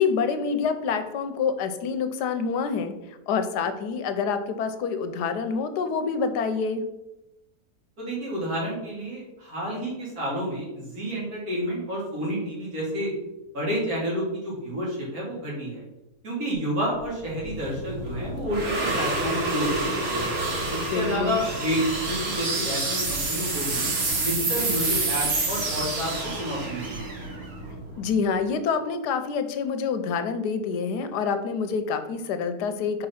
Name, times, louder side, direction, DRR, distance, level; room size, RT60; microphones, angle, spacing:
voice 1, 0.0-2.9 3.3-6.8 20.9-21.4 28.0-33.1, left 5 dB, 90° left, 9 dB, 1.2 m, -27 dB
voice 2, 8.0-13.1 13.5-15.8 16.2-20.3 20.7-21.8 22.1-23.9 24.2-27.1, equal, 60° right, -5 dB, 3.0 m, -30 dB
sound 1, 17.0-28.3, right 2 dB, 45° right, 1.3 m, -28 dB
5.2 x 3.9 x 5.6 m, 0.94 s
omnidirectional pair, 1.7 m